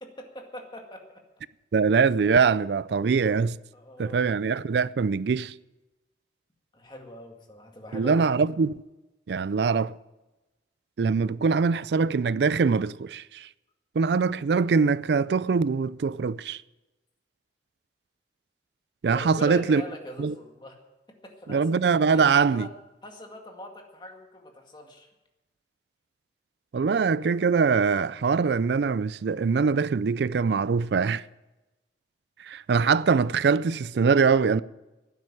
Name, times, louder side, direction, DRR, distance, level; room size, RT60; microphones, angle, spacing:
voice 1, 0.0-1.2 3.7-4.3 6.7-8.2 19.1-20.8 21.2-21.7 22.1-22.7 23.0-25.1, left 1 dB, 25° left, 2.1 m, -42 dB
voice 2, 1.7-3.6 4.0-5.5 7.9-8.7 9.3-10.0 11.0-13.5 14.0-16.6 19.0-19.8 20.2-20.3 21.5-22.7 26.7-31.2 32.4-34.6, right 5 dB, 70° right, 0.4 m, -23 dB
12.0 x 9.6 x 9.0 m
head